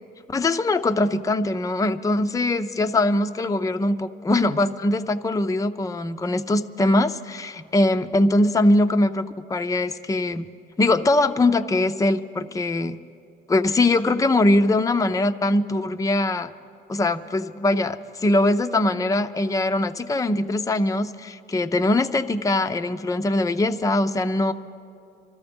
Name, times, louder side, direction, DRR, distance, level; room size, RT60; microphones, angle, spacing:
voice 1, 0.3-10.5 10.8-13.0 13.5-16.5 16.9-24.5, left 2 dB, 15° left, 8 dB, 0.5 m, -22 dB
25.5 x 13.5 x 3.5 m, 2.5 s
cardioid pair, 90°, 20 cm